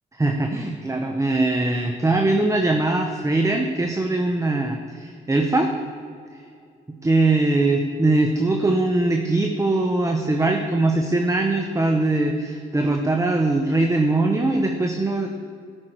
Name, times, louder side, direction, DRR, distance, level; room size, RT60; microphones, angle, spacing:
voice 1, 0.2-5.7 7.0-15.3, right 2 dB, 15° right, 4 dB, 0.8 m, -21 dB
12.0 x 6.3 x 4.5 m, 2.3 s
supercardioid pair, 60°, 20 cm